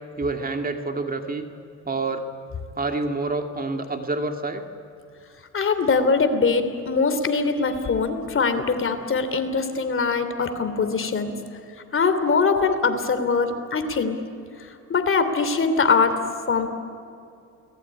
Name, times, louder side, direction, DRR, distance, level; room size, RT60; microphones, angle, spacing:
voice 1, 0.2-1.5 1.9-2.3 2.8-4.6 8.8-9.0, right 3 dB, 30° right, 5 dB, 2.4 m, -28 dB
voice 2, 5.5-11.3 11.9-14.2 14.6-16.7, left 4 dB, 45° left, 9 dB, 3.2 m, -22 dB
29.0 x 20.0 x 9.8 m, 2.5 s
cardioid pair, 90°, 30 cm